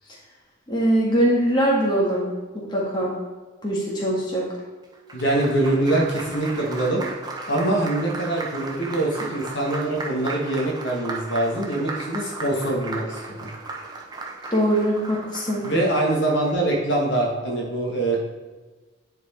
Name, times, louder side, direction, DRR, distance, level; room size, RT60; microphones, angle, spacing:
voice 1, 0.7-2.3 2.5-3.2 3.6-4.5 14.5-15.7, right 1 dB, 20° left, -4 dB, 1.9 m, -22 dB
Applause, 4.8-16.5, right 3 dB, 20° right, 0.9 m, -36 dB
voice 2, 5.1-7.0 7.5-13.5 15.6-18.2, right 2 dB, 60° left, -1 dB, 1.4 m, -24 dB
10.0 x 4.5 x 4.2 m, 1.3 s
head